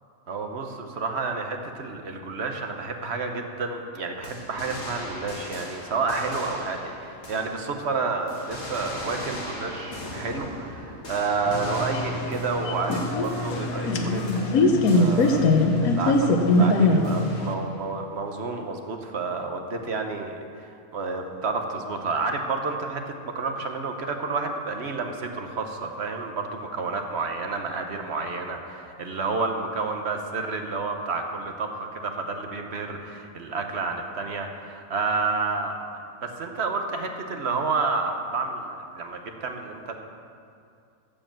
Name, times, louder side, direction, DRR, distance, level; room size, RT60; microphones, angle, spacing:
voice 1, 0.3-35.8 36.2-40.0, right 4 dB, 55° right, 4 dB, 1.1 m, -30 dB
sound 1, 4.2-7.9 8.3-14.0 14.3-15.9 17.0-17.8, left 1 dB, 65° left, 2.0 m, -40 dB
sound 2, 11.5-17.5, left 2 dB, 90° left, 1.3 m, -22 dB
14.0 x 4.9 x 7.4 m, 2.4 s
omnidirectional pair, 1.5 m